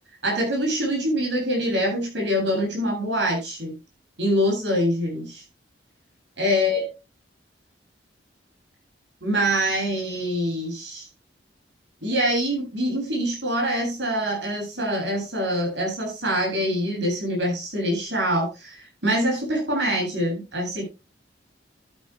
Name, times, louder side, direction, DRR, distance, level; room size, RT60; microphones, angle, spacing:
voice 1, 0.2-3.7 4.2-5.4 6.4-6.8 9.2-11.1 12.0-20.8, equal, 75° right, 0 dB, 7.9 m, -25 dB
14.0 x 12.5 x 2.3 m, 0.26 s
head